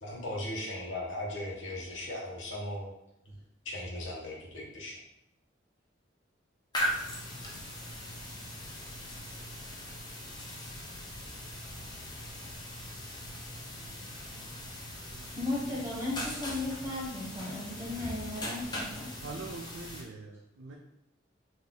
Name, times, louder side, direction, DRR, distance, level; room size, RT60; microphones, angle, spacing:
voice 1, 0.0-2.9 3.2-3.4 3.6-5.0, left 1 dB, 90° left, -3 dB, 1.2 m, -38 dB
sound 1, 6.7-20.0, equal, 25° left, 0.8 m, -40 dB
voice 2, 15.4-19.4, left 2 dB, 15° right, -5 dB, 1.0 m, -36 dB
voice 3, 19.2-20.8, right 3 dB, 85° right, 0 dB, 0.5 m, -43 dB
3.9 x 2.7 x 3.7 m, 0.82 s
head